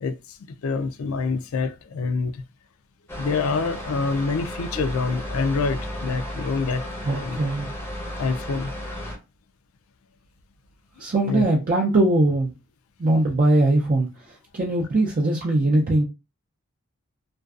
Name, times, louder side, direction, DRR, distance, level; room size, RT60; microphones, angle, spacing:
voice 1, 0.0-2.4 3.1-6.9 7.1-7.4 8.2-9.0 11.3-11.4, left 4 dB, 75° left, 0.4 m, -26 dB
sound 1, 3.1-9.2, left 1 dB, 10° left, 0.6 m, -34 dB
voice 2, 7.0-7.7 11.0-12.5 13.0-14.1 14.5-16.0, right 2 dB, 40° right, 0.4 m, -20 dB
2.5 x 2.3 x 2.3 m
head